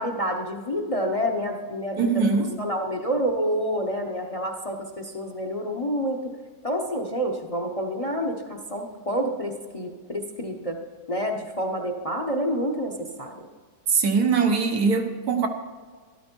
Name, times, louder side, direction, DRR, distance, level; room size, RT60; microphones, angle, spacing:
voice 1, 0.0-2.3 2.6-6.2 6.6-10.8 11.1-13.5, equal, 30° left, 3 dB, 0.7 m, -28 dB
voice 2, 2.0-2.5 13.9-15.5, right 5 dB, 75° right, 4 dB, 1.7 m, -22 dB
12.5 x 12.0 x 4.5 m, 1.5 s
omnidirectional pair, 1.6 m